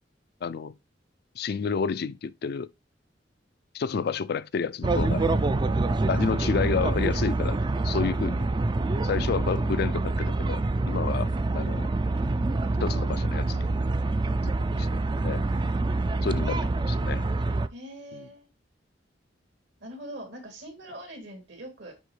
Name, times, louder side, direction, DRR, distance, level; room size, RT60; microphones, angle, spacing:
voice 1, 0.4-0.8 1.4-2.7 3.7-5.2 6.1-7.6 7.8-8.5 9.0-11.3 11.5-11.9 12.8-13.7 14.4-14.9 15.2-15.4 16.2-17.2 18.1-18.3, left 5 dB, 60° left, 0.4 m, -30 dB
sound 1, 4.8-17.7, right 2 dB, 25° right, 0.4 m, -26 dB
voice 2, 4.9-5.5 13.3-13.6 17.7-18.5 19.8-21.9, right 1 dB, 75° right, 2.9 m, -43 dB
9.5 x 3.6 x 3.2 m
head